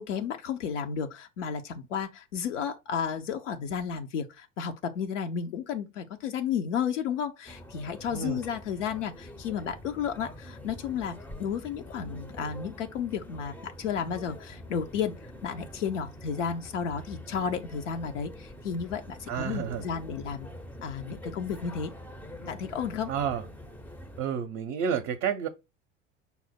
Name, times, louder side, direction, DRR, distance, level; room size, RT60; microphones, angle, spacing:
voice 1, 0.0-15.1 15.4-20.5 20.8-21.9 22.5-23.1, left 7 dB, 75° left, 0.6 m, -32 dB
sound 1, 7.5-24.2, left 1 dB, 5° left, 0.5 m, -45 dB
voice 2, 19.3-19.8 23.1-23.4 24.2-25.5, right 8 dB, 45° right, 0.6 m, -30 dB
5.4 x 2.0 x 4.4 m
figure-of-eight pair, 75°, 37 cm